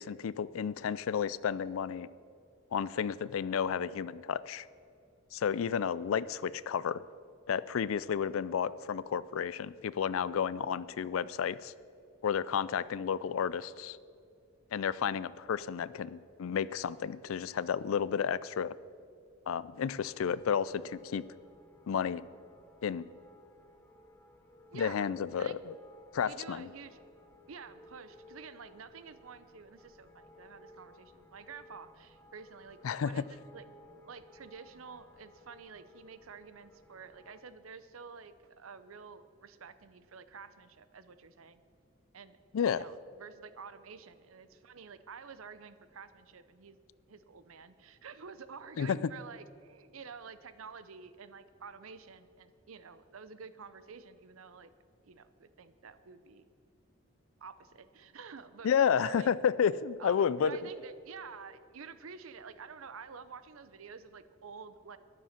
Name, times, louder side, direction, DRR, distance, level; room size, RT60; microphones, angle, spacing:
voice 1, 0.0-2.1 2.7-4.7 5.3-7.0 7.5-11.7 12.2-14.0 14.7-18.7 19.5-21.2 21.9-22.2 22.8-23.1 24.7-25.8 26.1-26.7 32.8-33.2 42.5-42.9 48.8-49.1 58.6-60.6, left 7 dB, 85° left, 18 dB, 0.4 m, -31 dB
sound 1, 20.1-37.4, left 1 dB, 10° left, 1.1 m, -59 dB
voice 2, 24.7-25.1 25.4-25.6 26.2-27.0 27.5-33.6 34.1-41.6 42.1-42.4 42.7-46.8 47.1-54.7 55.0-56.5 57.4-59.4 60.0-65.0, right 5 dB, 90° right, 13 dB, 0.7 m, -49 dB
13.0 x 10.0 x 5.8 m, 2.4 s
head